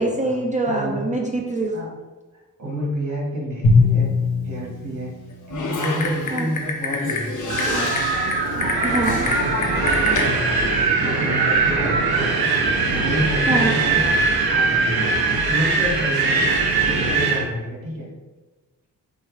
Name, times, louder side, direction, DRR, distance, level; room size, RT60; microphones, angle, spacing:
voice 1, 0.0-1.8 6.3-6.5 8.8-9.3 13.5-13.7, right 2 dB, 20° right, 0 dB, 0.4 m, -24 dB
voice 2, 0.6-1.1 1.7-1.9 2.6-4.1 4.4-5.2 5.5-7.6 10.1-12.3 12.8-14.1 14.5-15.1 15.5-16.5 16.8-18.1, equal, 55° right, -2 dB, 1.4 m, -29 dB
Drum, 3.6-6.0, left 4 dB, 80° left, 1.0 m, -20 dB
Typing, 5.5-10.3, left 3 dB, 55° left, 0.8 m, -27 dB
Wind, 7.5-17.4, right 4 dB, 85° right, 0.8 m, -21 dB
4.4 x 2.7 x 3.3 m, 1.2 s
cardioid pair, 95°, 36 cm